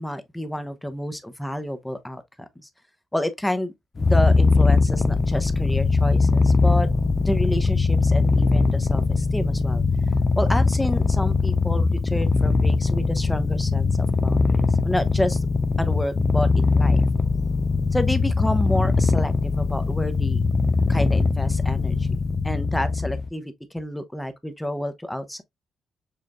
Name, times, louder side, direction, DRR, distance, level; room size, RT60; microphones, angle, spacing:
voice 1, 0.0-2.7 3.1-6.9 7.2-9.8 10.4-15.5 15.8-17.0 17.9-20.4 20.9-22.1 22.4-25.4, left 1 dB, 10° left, 0.8 m, -29 dB
Purr, 4.0-23.3, left 3 dB, 40° left, 0.5 m, -21 dB
6.5 x 2.4 x 2.2 m
supercardioid pair, 50°, 0 cm